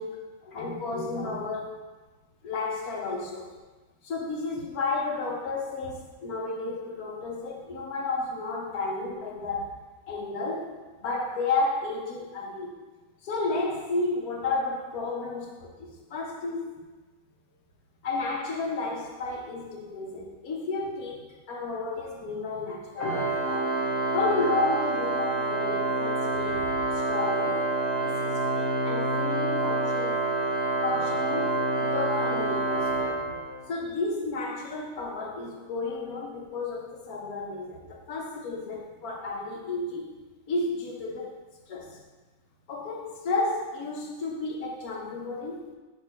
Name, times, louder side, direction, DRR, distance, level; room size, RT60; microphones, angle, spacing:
voice 1, 0.0-1.8 2.4-3.5 4.0-9.8 10.1-10.7 11.0-12.8 13.2-16.7 18.0-23.7 24.1-27.7 28.0-30.2 30.8-33.3 33.7-40.1 40.5-41.3 41.7-42.0 42.7-45.7, left 3 dB, 85° left, 0 dB, 1.4 m, -32 dB
Organ, 23.0-33.8, right 2 dB, 55° right, 1.1 m, -27 dB
6.1 x 3.3 x 4.7 m, 1.3 s
omnidirectional pair, 1.5 m